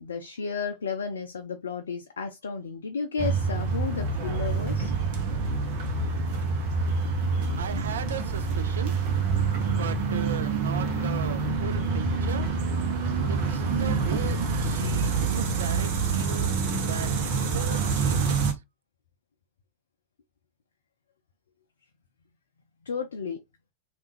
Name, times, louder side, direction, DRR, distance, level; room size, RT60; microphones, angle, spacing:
voice 1, 0.0-4.9 22.8-23.4, left 5 dB, 65° left, 0.4 m, -33 dB
sound 1, 3.2-18.5, right 4 dB, 45° right, 0.9 m, -27 dB
voice 2, 7.6-8.9 9.7-12.5 13.3-18.4, right 8 dB, 65° right, 0.4 m, -37 dB
3.4 x 2.4 x 3.1 m
figure-of-eight pair, 90°, 0 cm